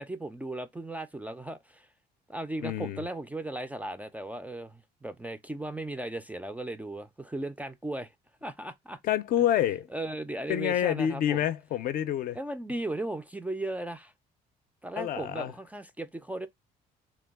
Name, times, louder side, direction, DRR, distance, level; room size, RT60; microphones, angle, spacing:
voice 1, 0.0-1.9 2.3-8.1 8.4-9.0 9.9-11.4 12.3-14.1 14.8-16.5, right 1 dB, 10° right, 0.3 m, -36 dB
voice 2, 2.6-3.0 9.0-9.9 10.5-12.4 14.9-15.5, left 11 dB, 60° left, 0.5 m, -27 dB
3.1 x 2.2 x 3.4 m
cardioid pair, 110°, 17 cm